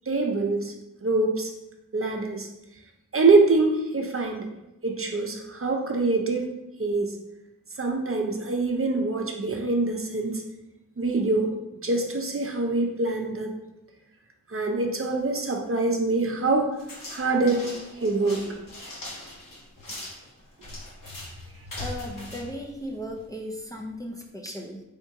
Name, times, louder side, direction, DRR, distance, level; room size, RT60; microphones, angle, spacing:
voice 1, 0.1-0.7 1.0-1.5 1.9-2.5 3.1-4.5 4.8-6.5 6.8-7.2 7.8-10.4 11.0-11.5 11.8-13.5 14.5-16.7 17.1-18.5, right 3 dB, 45° right, 2 dB, 0.7 m, -24 dB
sound 1, 16.8-23.3, left 1 dB, 85° left, 1.1 m, -40 dB
voice 2, 21.8-24.8, equal, 10° left, -1 dB, 0.5 m, -36 dB
3.6 x 2.7 x 4.7 m, 0.90 s
wide cardioid pair, 75°, 32 cm